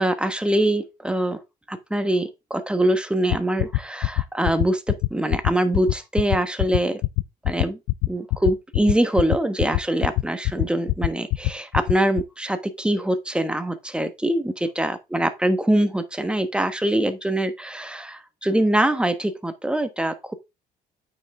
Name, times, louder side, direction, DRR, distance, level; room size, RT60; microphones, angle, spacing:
voice 1, 0.0-1.4 1.7-7.0 7.4-7.8 8.1-20.3, right 1 dB, 5° right, 1.1 m, -23 dB
sound 1, 3.3-12.2, left 20 dB, 90° left, 0.5 m, -21 dB
8.9 x 5.5 x 3.5 m
cardioid pair, 110°, 17 cm